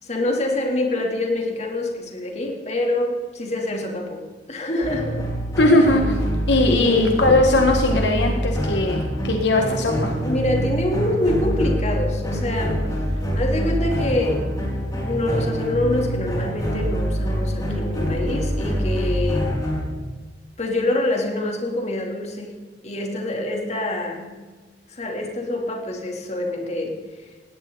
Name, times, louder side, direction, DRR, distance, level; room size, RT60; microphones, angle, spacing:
voice 1, 0.0-4.2 4.5-5.2 5.8-5.9 6.6-7.1 10.2-12.9 13.3-14.5 15.0-19.6 20.6-22.6 22.8-24.4 24.9-27.3, left 1 dB, 40° left, 1 dB, 3.3 m, -25 dB
sound 1, 4.8-19.8, equal, 20° left, 5.9 m, -25 dB
voice 2, 5.6-6.2 6.5-10.1, left 2 dB, 75° left, 2 dB, 1.7 m, -19 dB
19.5 x 16.5 x 4.1 m, 1.4 s
head